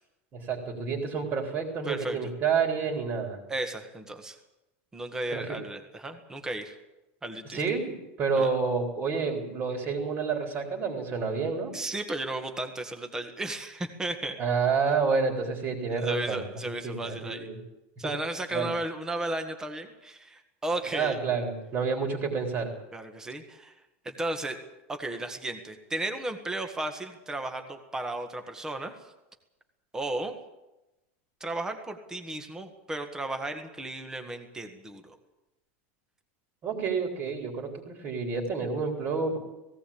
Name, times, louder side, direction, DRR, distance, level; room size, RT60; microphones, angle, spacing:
voice 1, 0.3-3.4 5.3-5.6 7.5-11.7 14.4-17.6 18.0-18.1 18.5-18.7 20.9-22.7 36.6-39.4, right 5 dB, 30° right, 3 dB, 3.8 m, -29 dB
voice 2, 1.9-2.3 3.5-4.4 4.9-6.7 7.2-7.6 8.4-8.5 11.7-14.4 15.9-17.5 18.0-21.2 22.9-23.7 24.0-24.6 24.9-28.9 29.9-30.3 31.4-35.2, right 2 dB, 10° right, 6 dB, 1.7 m, -34 dB
18.0 x 17.0 x 8.7 m, 0.98 s
supercardioid pair, 160°, 7 cm